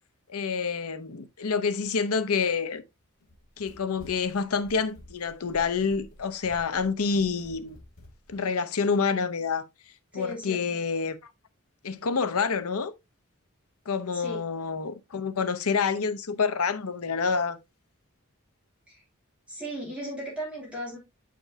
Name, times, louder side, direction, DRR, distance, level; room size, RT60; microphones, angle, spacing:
voice 1, 0.3-2.8 3.6-7.8 8.3-9.6 10.1-11.2 11.8-12.9 13.9-17.6, left 5 dB, 90° left, 0.7 m, -27 dB
Run, 3.2-8.4, left 1 dB, 70° left, 2.6 m, -50 dB
voice 2, 10.1-10.8 14.1-14.4 18.9-19.0 19.5-21.0, equal, 5° right, 2.6 m, -36 dB
8.9 x 5.1 x 2.7 m
head